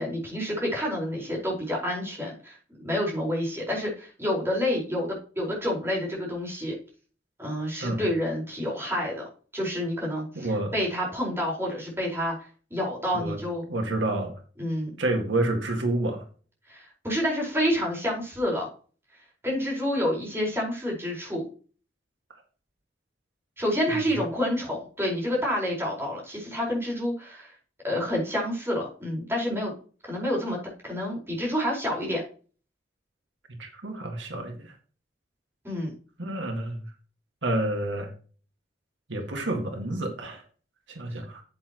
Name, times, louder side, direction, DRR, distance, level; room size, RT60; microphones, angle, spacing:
voice 1, 0.0-6.7 7.4-9.2 9.5-12.3 12.7-13.7 14.6-14.9 16.7-18.7 19.4-21.4 23.6-27.5 27.8-29.7 30.0-30.6 30.8-32.2 35.6-35.9, equal, 15° right, -3 dB, 4.8 m, -28 dB
voice 2, 10.4-10.7 13.1-13.4 13.7-14.3 15.0-16.2 33.6-34.7 36.2-36.8 37.4-38.1 39.1-40.4 40.9-41.4, right 2 dB, 80° right, 4 dB, 2.0 m, -29 dB
9.7 x 8.5 x 3.0 m, 0.39 s
head